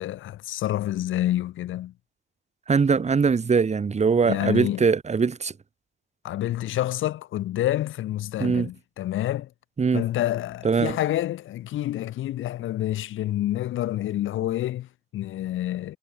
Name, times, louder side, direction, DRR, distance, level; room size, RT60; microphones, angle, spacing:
voice 1, 0.0-1.9 4.2-4.9 6.2-9.5 9.9-16.0, left 13 dB, 80° left, 4.3 m, -28 dB
voice 2, 2.7-5.5 8.4-8.7 9.8-10.0 10.6-11.0, right 5 dB, 35° right, 2.3 m, -22 dB
cardioid pair, 90°, 20 cm